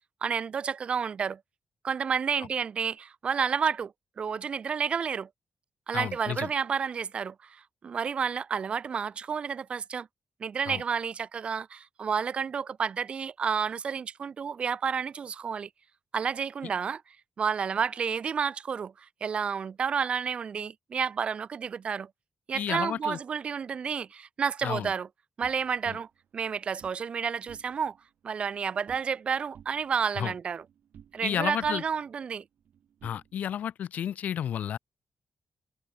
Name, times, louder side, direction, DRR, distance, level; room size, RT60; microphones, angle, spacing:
voice 1, 0.2-1.4 1.8-5.3 5.9-10.1 10.4-15.7 16.1-17.0 17.4-22.1 22.5-25.1 25.4-26.1 26.3-28.0 28.2-30.6 31.1-32.4, right 6 dB, 45° right, 0.3 m, -30 dB
voice 2, 5.9-6.5 10.7-10.8 22.5-23.2 24.6-24.9 30.2-30.3 31.2-31.8 33.0-34.8, left 9 dB, 85° left, 0.5 m, -31 dB
sound 1, 25.4-27.0 27.4-28.0 28.3-29.2 29.5-31.3 31.6-33.7, right 9 dB, 80° right, 3.5 m, -56 dB
wide cardioid pair, 150°, 3 cm